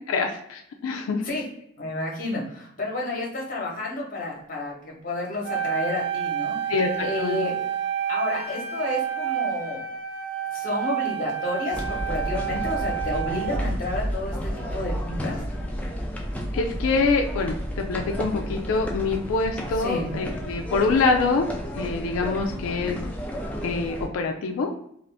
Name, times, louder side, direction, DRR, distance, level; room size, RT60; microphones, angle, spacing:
voice 1, 0.1-1.2 6.7-7.4 16.5-21.5 21.8-23.1 23.6-24.7, left 4 dB, 90° left, 3 dB, 0.3 m, -25 dB
voice 2, 1.8-7.6 8.1-9.8 10.5-15.4 19.7-20.1, left 2 dB, 45° left, -2 dB, 0.9 m, -31 dB
Wind instrument woodwind instrument, 5.4-13.7, right 9 dB, 60° right, 0.6 m, -29 dB
sound 1, 11.7-24.1, equal, 5° left, 0.4 m, -31 dB
2.5 x 2.5 x 3.3 m, 0.73 s
head